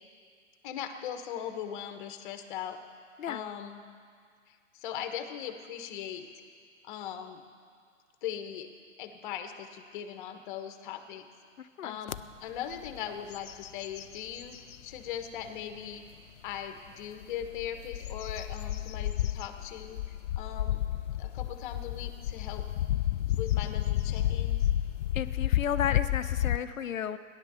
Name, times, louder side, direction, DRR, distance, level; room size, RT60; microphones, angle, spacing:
voice 1, 0.6-2.8 3.3-3.9 4.5-6.3 6.8-7.4 8.2-8.7 9.0-11.2 11.8-14.6 14.8-16.0 16.4-20.8 21.2-22.6 23.3-24.7, left 9 dB, 40° left, 7 dB, 1.3 m, -39 dB
sound 1, 12.1-12.2 12.7-13.0 13.3-14.8 15.4-15.5 17.2-26.6, left 13 dB, 70° left, 0.5 m, -31 dB
voice 2, 25.1-27.2, left 8 dB, 85° left, 11 dB, 0.9 m, -33 dB
15.0 x 11.0 x 6.9 m, 2.1 s
hypercardioid pair, 145°, 39 cm